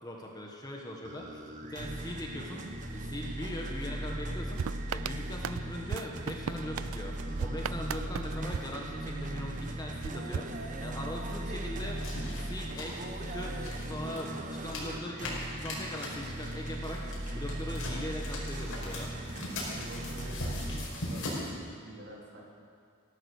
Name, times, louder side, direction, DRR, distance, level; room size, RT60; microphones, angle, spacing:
voice 1, 0.0-2.6 2.9-4.6 4.9-7.1 7.4-12.0 12.3-13.6 13.9-19.1, left 1 dB, 20° left, 0 dB, 1.5 m, -40 dB
sound 1, 1.0-20.9, right 1 dB, 35° right, 1.1 m, -38 dB
sound 2, 4.6-9.4 10.0-11.2, right 7 dB, 70° right, 0.3 m, -38 dB
sound 3, 12.0-21.5, left 1 dB, 85° left, 4.6 m, -41 dB
voice 2, 19.7-22.4, right 1 dB, 55° right, -3 dB, 3.4 m, -47 dB
16.0 x 12.5 x 6.6 m, 2.2 s
head